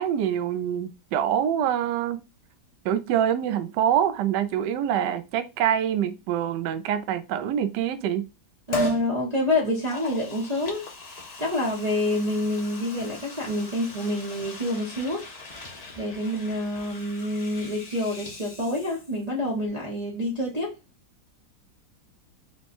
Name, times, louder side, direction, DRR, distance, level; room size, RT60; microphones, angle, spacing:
voice 1, 0.0-2.2 2.8-8.2, right 9 dB, 70° right, 1.0 m, -25 dB
Liquid, 8.7-9.1 9.6-19.3 19.6-19.7, left 1 dB, 85° left, 0.3 m, -38 dB
voice 2, 8.7-10.9 11.4-15.2 16.0-20.7, left 1 dB, 30° right, 0.7 m, -27 dB
4.3 x 2.3 x 4.2 m
omnidirectional pair, 2.2 m